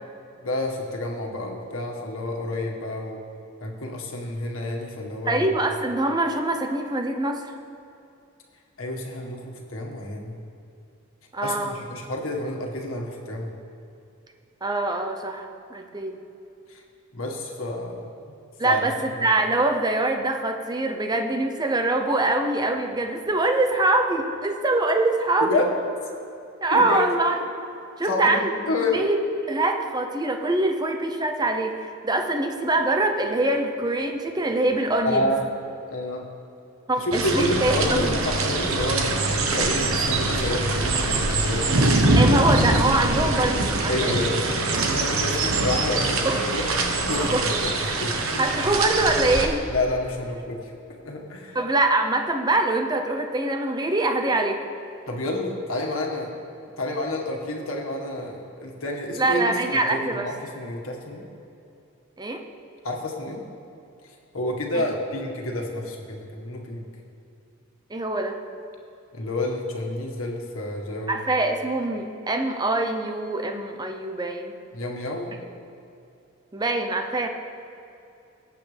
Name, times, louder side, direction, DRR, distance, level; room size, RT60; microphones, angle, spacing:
voice 1, 0.4-3.2 3.6-5.5 8.8-10.4 11.4-13.5 16.7-16.8 17.1-18.1 18.6-18.9 19.2-19.3 25.4-25.7 26.7-27.0 28.0-28.4 28.7-29.0 35.0-35.5 35.9-36.2 37.0-41.8 42.3-42.4 43.2-43.3 43.9-44.4 44.8-46.3 46.5-46.6 47.1-48.7 49.7-50.7 51.0-51.6 55.1-56.3 56.8-61.2 62.8-63.4 64.0-66.9 69.1-71.2 74.7-75.4, left 1 dB, 80° left, 0 dB, 1.7 m, -29 dB
voice 2, 5.3-7.5 11.3-11.8 14.6-16.2 18.6-25.6 26.6-27.4 28.0-28.5 28.9-29.2 29.5-35.3 36.9-38.2 42.2-44.2 46.2-46.5 47.2-47.4 48.4-49.6 51.5-54.6 59.2-60.3 62.2-62.4 64.7-64.8 67.9-68.4 71.1-74.5 76.5-77.3, right 2 dB, 20° right, 5 dB, 0.7 m, -24 dB
sound 1, 37.1-49.5, right 2 dB, 85° right, 1.2 m, -23 dB
18.5 x 8.4 x 3.4 m, 2.6 s
head